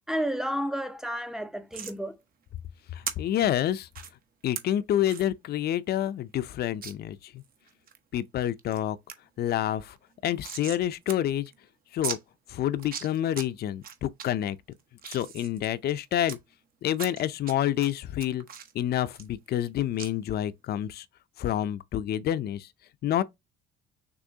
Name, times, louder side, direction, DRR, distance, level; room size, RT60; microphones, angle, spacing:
voice 1, 0.1-2.2, equal, ahead, 0.6 m, -31 dB
sound 1, 1.7-2.0 3.1-3.2 3.9-4.1 4.6-4.7 5.1-5.3 5.7-5.8 6.0-6.1 6.8-6.9 7.4-8.0 8.4-8.8 9.1-9.2 9.5-10.8 11.1-11.2 11.5-11.6 12.0-12.2 12.7-13.5 13.8-14.3 14.7-16.4 16.9-17.5 17.8-19.7 20.0-20.1, right 7 dB, 45° right, 0.8 m, -38 dB
voice 2, 3.2-3.9 4.4-7.4 8.1-9.0 9.4-9.9 10.2-11.5 11.9-12.2 12.5-14.6 15.1-16.4 16.8-18.4 18.7-21.0 21.4-22.7 23.0-23.2, left 11 dB, 50° left, 0.5 m, -28 dB
6.1 x 3.1 x 2.8 m
cardioid pair, 105°, 20 cm